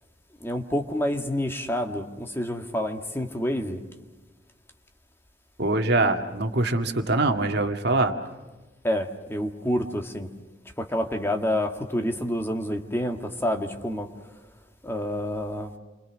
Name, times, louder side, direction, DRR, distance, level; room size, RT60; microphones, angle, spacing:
voice 1, 0.4-3.8 8.8-10.3 10.8-14.1 14.8-15.7, equal, 15° left, 1.9 m, -28 dB
voice 2, 5.6-8.1, right 2 dB, 60° right, 1.9 m, -23 dB
29.5 x 25.0 x 6.3 m
head